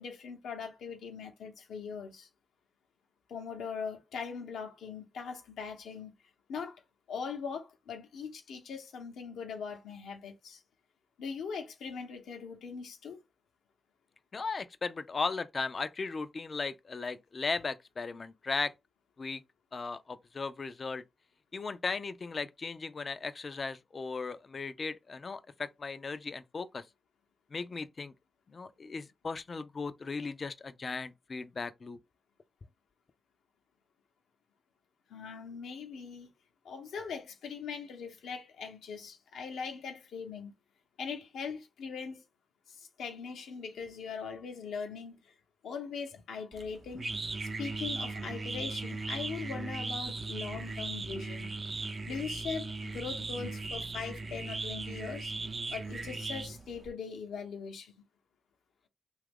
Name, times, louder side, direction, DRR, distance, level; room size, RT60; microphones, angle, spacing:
voice 1, 0.0-2.3 3.3-6.1 6.5-6.8 7.1-10.6 11.2-13.2 35.1-36.3 36.6-40.5 41.0-42.2 42.7-45.3 45.6-47.0 47.4-51.5 52.1-55.3 55.7-57.9, left 6 dB, 85° left, 0.7 m, -41 dB
voice 2, 14.3-18.7 19.2-19.4 19.7-21.0 21.5-26.8 27.5-28.1 28.5-32.0, left 4 dB, 50° left, 0.4 m, -37 dB
sound 1, 46.5-56.9, right 3 dB, 50° right, 0.6 m, -38 dB
2.8 x 2.4 x 3.5 m
supercardioid pair, 40°, 0 cm